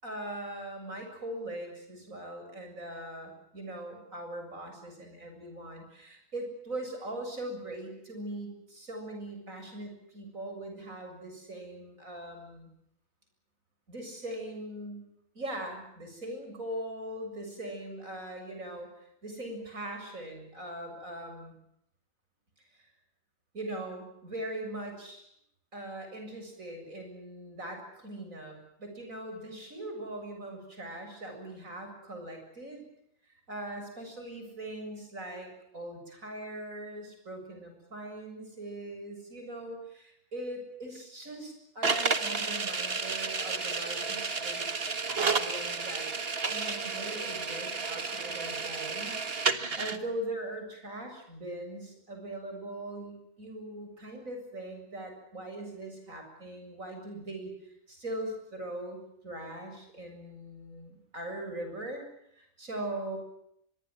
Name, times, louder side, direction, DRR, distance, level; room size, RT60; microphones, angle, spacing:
voice 1, 0.0-12.7 13.9-15.0 15.3-21.5 22.7-22.8 23.5-25.3 25.7-32.8 33.5-44.8 45.2-46.1 46.5-62.0 62.3-63.2, right 1 dB, 90° right, 4 dB, 8.0 m, -41 dB
Old School Projector, 41.8-50.0, right 4 dB, 45° right, 1.8 m, -31 dB
24.5 x 22.5 x 7.7 m, 0.77 s
omnidirectional pair, 1.4 m